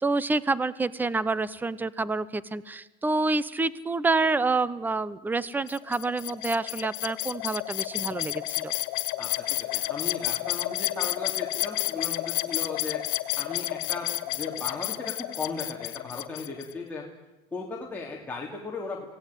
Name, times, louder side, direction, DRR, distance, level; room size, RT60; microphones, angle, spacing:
voice 1, 0.0-8.7, right 3 dB, 10° right, 18 dB, 0.9 m, -28 dB
sound 1, 5.7-16.7, left 18 dB, 90° left, 1.7 m, -31 dB
voice 2, 9.2-13.0 13.4-17.0 17.5-19.0, left 3 dB, 10° left, -3 dB, 3.2 m, -37 dB
27.5 x 17.5 x 9.3 m, 1.1 s
cardioid pair, 140°, 17 cm